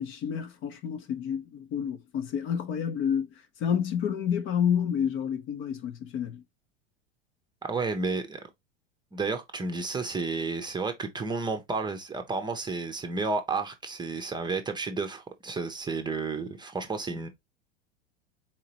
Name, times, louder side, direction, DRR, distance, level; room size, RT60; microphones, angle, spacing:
voice 1, 0.0-6.4, left 8 dB, 35° left, 0.8 m, -29 dB
voice 2, 7.6-8.4 9.1-17.3, right 3 dB, 15° right, 0.8 m, -31 dB
4.3 x 3.8 x 2.9 m
figure-of-eight pair, 90°, 34 cm